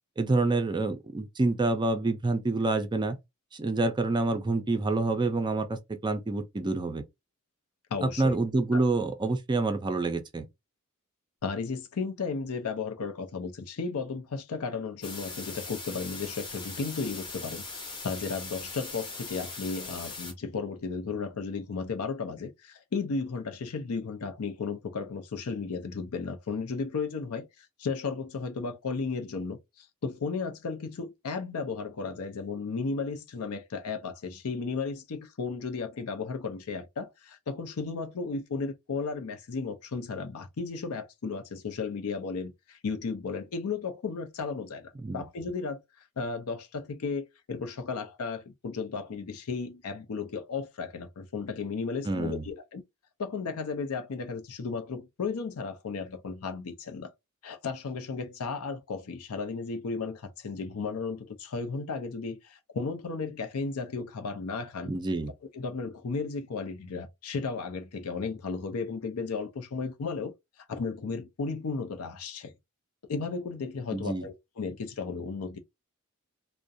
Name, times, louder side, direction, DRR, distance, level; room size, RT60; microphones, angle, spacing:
voice 1, 0.2-3.2 3.5-7.0 8.0-10.4 45.0-45.3 52.0-52.5 64.9-65.3 73.9-74.3, right 2 dB, 20° right, 0.4 m, -27 dB
voice 2, 7.9-8.4 8.7-8.8 11.4-17.6 18.0-45.8 46.2-52.8 53.2-57.1 57.4-64.9 65.5-70.3 70.7-72.5 73.1-75.6, left 4 dB, 85° left, 0.5 m, -34 dB
sound 1, 15.0-20.3, left 3 dB, 25° left, 0.7 m, -40 dB
2.4 x 2.1 x 2.6 m
head